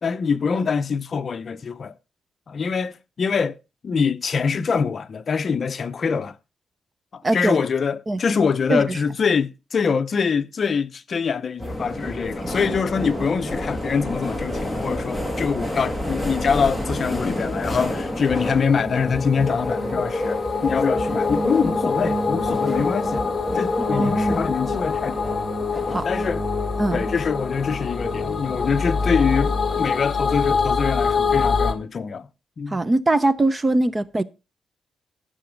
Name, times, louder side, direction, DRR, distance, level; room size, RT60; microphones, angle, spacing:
voice 1, 0.0-1.9 2.5-3.6 3.8-6.3 7.1-23.3 23.5-25.4 25.9-26.4 26.9-32.3 32.6-32.8, left 6 dB, 40° left, 0.7 m, -24 dB
voice 2, 7.2-7.6 8.1-8.2 8.7-9.0 23.9-24.4 25.9-26.1 26.8-27.1 32.7-34.2, right 2 dB, 20° right, 0.6 m, -21 dB
sound 1, 11.6-30.0, left 1 dB, 5° right, 1.6 m, -29 dB
sound 2, 16.8-31.7, left 4 dB, 25° left, 1.6 m, -26 dB
13.5 x 6.9 x 5.1 m
wide cardioid pair, 160°, 0 cm